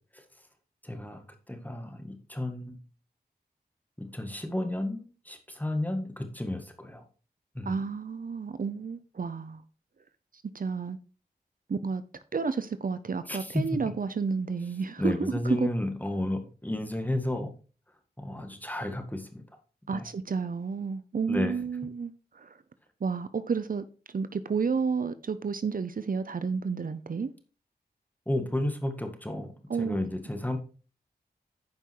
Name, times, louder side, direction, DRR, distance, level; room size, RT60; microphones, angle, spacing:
voice 1, 0.8-2.8 4.0-7.1 7.6-7.7 13.3-13.6 15.0-17.5 18.2-19.4 19.9-20.1 21.3-21.5 28.3-29.5 29.8-30.6, left 1 dB, 10° left, 1.8 m, -32 dB
voice 2, 7.6-9.6 10.5-11.0 11.7-12.0 12.3-15.7 19.9-22.6 23.0-23.8 24.1-27.3 29.7-30.0, right 5 dB, 55° right, 0.7 m, -31 dB
9.6 x 5.4 x 4.6 m
wide cardioid pair, 60°, 17 cm